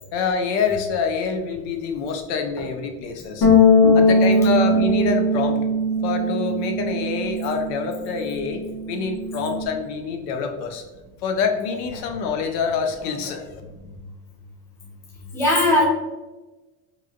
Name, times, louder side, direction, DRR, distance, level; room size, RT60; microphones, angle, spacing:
voice 1, 0.1-3.5 3.9-5.6 6.0-10.8 11.2-13.6, left 5 dB, 85° left, 5 dB, 0.7 m, -26 dB
Bass guitar, 3.4-9.7, left 2 dB, 30° left, 0.8 m, -20 dB
voice 2, 15.3-15.8, left 1 dB, 5° left, -4 dB, 0.5 m, -19 dB
3.0 x 2.7 x 2.4 m, 1.2 s
cardioid pair, 145°, 47 cm